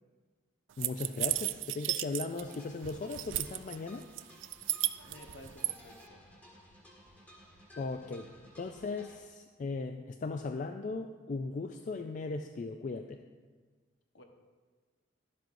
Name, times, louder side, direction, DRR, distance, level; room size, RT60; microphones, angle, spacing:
voice 1, 0.8-4.0 7.8-8.3 8.6-13.2, left 3 dB, 40° left, 6 dB, 0.3 m, -38 dB
sound 1, 0.8-2.5 2.8-3.7 4.2-5.7, right 16 dB, 70° right, 0.3 m, -33 dB
sound 2, 2.4-9.2, equal, 10° left, 1.4 m, -56 dB
voice 2, 5.0-6.3 14.1-14.2, left 1 dB, 65° left, 3 dB, 1.0 m, -53 dB
12.0 x 7.5 x 2.6 m, 1.4 s
head